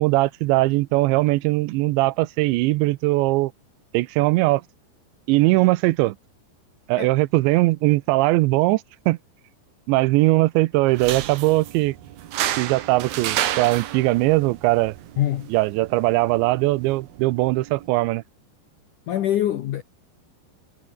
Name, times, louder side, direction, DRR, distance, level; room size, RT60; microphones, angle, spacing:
voice 1, 0.0-3.5 3.9-4.6 5.3-6.2 6.9-9.2 9.9-12.0 12.6-15.0 15.5-18.2, right 20 dB, 85° right, 3.0 m, -20 dB
sound 1, 10.9-17.9, right 12 dB, 65° right, 3.1 m, -31 dB
voice 2, 15.2-15.5 19.1-19.8, left 12 dB, 75° left, 1.9 m, -24 dB
omnidirectional pair, 5.2 m